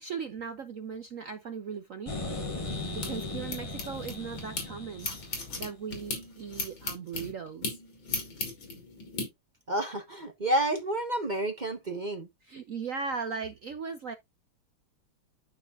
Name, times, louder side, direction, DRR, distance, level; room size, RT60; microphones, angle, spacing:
voice 1, 0.0-2.1 2.9-7.8 12.4-14.1, right 5 dB, 70° right, 0.7 m, -38 dB
sound 1, 2.1-5.9, left 2 dB, 15° left, 1.4 m, -37 dB
sound 2, 2.3-4.7 5.0-9.3, left 3 dB, 60° left, 3.6 m, -37 dB
voice 2, 9.7-12.3, right 1 dB, 35° right, 0.8 m, -30 dB
12.5 x 4.8 x 2.5 m
omnidirectional pair, 2.4 m